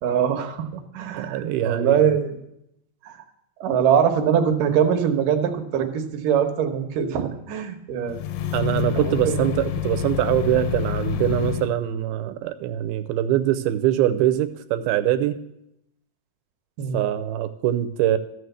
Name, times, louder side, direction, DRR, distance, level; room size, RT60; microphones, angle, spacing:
voice 1, 0.0-2.4 3.0-3.2 3.6-8.5 8.9-9.5 16.8-17.0, right 8 dB, 70° right, 6 dB, 2.4 m, -23 dB
voice 2, 1.2-2.1 8.5-15.4 16.9-18.2, right 12 dB, 85° right, 11 dB, 2.6 m, -23 dB
sound 1, 8.1-11.7, left 12 dB, 80° left, 2.1 m, -28 dB
14.5 x 6.6 x 7.9 m, 0.81 s
omnidirectional pair, 4.4 m